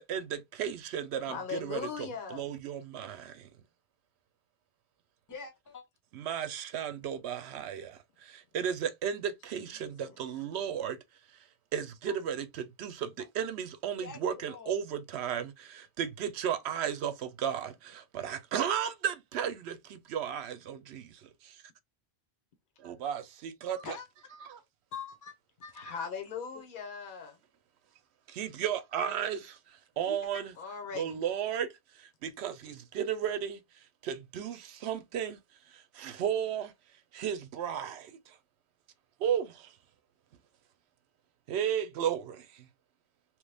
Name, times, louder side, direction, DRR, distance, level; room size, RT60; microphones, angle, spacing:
voice 1, 0.0-3.5 6.1-11.0 11.7-21.6 22.8-24.0 24.4-24.6 28.3-30.5 30.9-33.6 34.0-35.4 35.7-36.7 37.1-38.4 39.2-39.8 41.5-42.7, right 8 dB, 85° right, 0.9 m, -34 dB
voice 2, 1.2-2.4 9.8-10.2 25.7-27.4 30.6-31.2, left 6 dB, 55° left, 1.0 m, -39 dB
voice 3, 5.3-5.8 12.1-12.2 13.9-14.7 23.8-24.1 24.9-25.4 25.6-26.1 30.1-30.4, left 5 dB, 20° left, 0.6 m, -44 dB
3.1 x 2.2 x 3.3 m
omnidirectional pair, 1.1 m